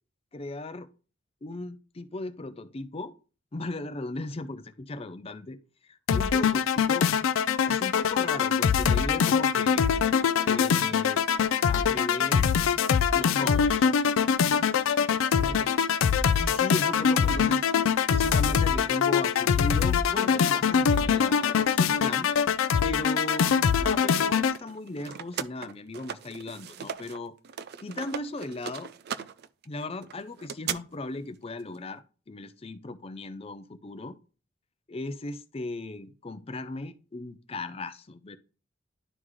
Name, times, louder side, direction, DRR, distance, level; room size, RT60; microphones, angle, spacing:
voice 1, 0.3-0.9 1.4-3.1 3.5-5.6 5.8-7.1 7.7-9.9 10.4-11.2 11.7-12.5 13.1-13.9 15.4-15.7 16.4-17.6 18.1-22.3 22.8-23.5 23.8-27.3 27.8-28.9 29.7-34.2 34.9-38.4, left 2 dB, 30° left, 0.5 m, -37 dB
sound 1, 6.1-24.6, left 7 dB, 90° left, 0.4 m, -23 dB
sound 2, 24.6-27.2 27.4-30.8, right 8 dB, 55° right, 0.3 m, -37 dB
11.0 x 3.8 x 3.1 m
head